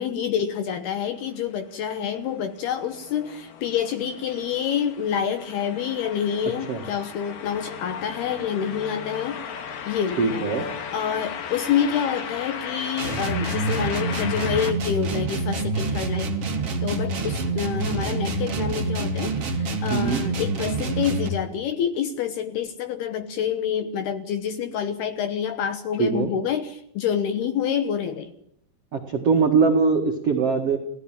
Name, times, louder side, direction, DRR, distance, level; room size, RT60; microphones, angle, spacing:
voice 1, 0.0-9.4 9.9-10.5 10.9-16.3 16.8-28.3, left 8 dB, 70° left, 9 dB, 2.5 m, -27 dB
sound 1, 2.2-14.7, left 7 dB, 55° left, 2.7 m, -36 dB
voice 2, 10.2-10.7 19.9-20.2 26.0-26.3 28.9-30.8, right 5 dB, 85° right, 3 dB, 1.3 m, -21 dB
sound 2, 13.0-21.4, right 3 dB, 35° right, 2.7 m, -27 dB
29.0 x 17.0 x 8.9 m, 0.73 s
omnidirectional pair, 5.9 m